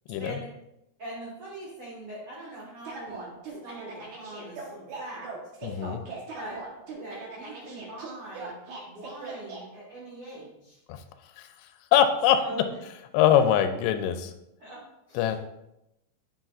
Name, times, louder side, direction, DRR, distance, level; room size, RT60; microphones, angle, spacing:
voice 1, 0.2-0.5 1.0-5.3 5.7-5.8 6.3-6.6 7.0-8.6 8.9-10.8 12.3-12.7 14.6-15.4, right 1 dB, 90° right, -6 dB, 1.2 m, -42 dB
sound 1, 2.9-9.6, right 4 dB, 65° right, 2.0 m, -40 dB
voice 2, 5.6-6.0 10.9-11.0 11.4-11.5 11.9-12.4 13.1-14.3 15.2-15.4, left 9 dB, 85° left, 8 dB, 2.7 m, -22 dB
8.9 x 5.8 x 2.4 m, 0.85 s
omnidirectional pair, 4.9 m